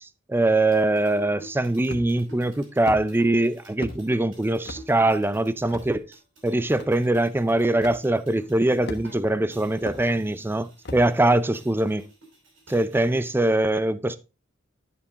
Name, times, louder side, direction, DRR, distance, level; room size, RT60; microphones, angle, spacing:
voice 1, 0.3-6.1 6.4-12.0 12.7-14.2, right 2 dB, 10° right, 0.5 m, -22 dB
sound 1, 0.5-9.2 9.5-13.3, right 2 dB, 75° right, 5.2 m, -48 dB
sound 2, 1.9-2.3 2.9-3.0 3.8-4.0 4.6-4.8 5.7-5.9 6.8-6.9 7.8-8.0 8.9-9.3 9.9-10.0 10.8-11.1, left 2 dB, 60° left, 1.2 m, -35 dB
11.5 x 7.0 x 2.5 m
head